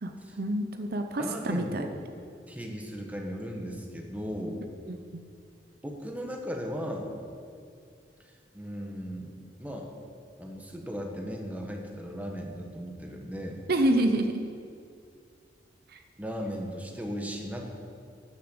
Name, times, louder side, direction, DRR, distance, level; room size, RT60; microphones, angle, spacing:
voice 1, 0.0-1.9 4.9-5.2 13.7-14.4 15.9-16.0, right 1 dB, 60° right, 6 dB, 0.7 m, -28 dB
voice 2, 1.2-2.0 2.5-4.7 5.8-7.1 8.5-9.3 9.6-9.9 10.4-13.6 16.2-17.7, equal, 10° right, 1 dB, 1.5 m, -36 dB
13.0 x 6.9 x 8.0 m, 2.4 s
head